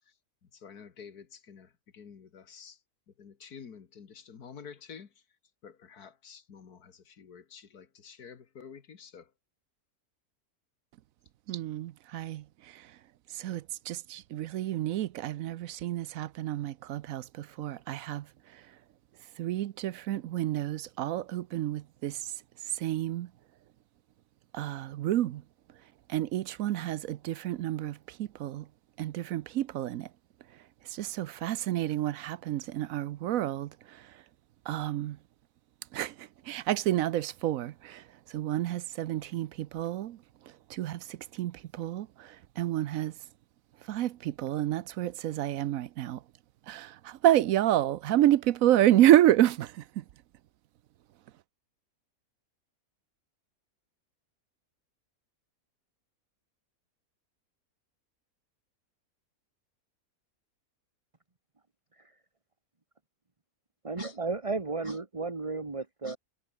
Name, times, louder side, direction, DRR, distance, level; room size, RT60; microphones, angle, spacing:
voice 1, 0.4-2.8 3.2-5.2 5.6-9.3, left 6 dB, 80° left, 2.2 m, -49 dB
voice 2, 11.5-13.0 13.3-18.7 19.4-22.3 22.6-23.3 24.5-25.4 26.1-28.7 29.0-30.1 30.8-34.2 34.7-35.2 35.9-43.2 43.8-46.2 46.7-50.0, right 13 dB, 70° right, 1.0 m, -29 dB
voice 3, 63.8-66.2, right 3 dB, 20° right, 1.7 m, -34 dB
omnidirectional pair, 1.6 m